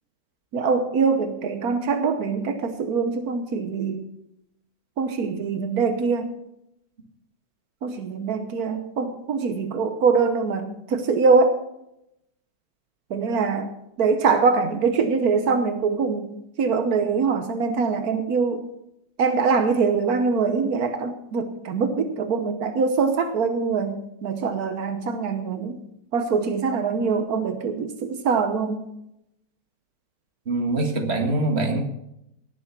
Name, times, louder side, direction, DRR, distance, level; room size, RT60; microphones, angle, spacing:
voice 1, 0.5-4.0 5.0-6.3 7.8-11.6 13.1-13.7 14.0-18.6 19.2-24.0 24.2-25.8 26.1-28.8, right 5 dB, 85° right, 8 dB, 1.5 m, -23 dB
voice 2, 30.5-31.8, right 2 dB, 45° right, 3 dB, 2.1 m, -23 dB
18.5 x 7.0 x 6.0 m, 0.81 s
omnidirectional pair, 1.5 m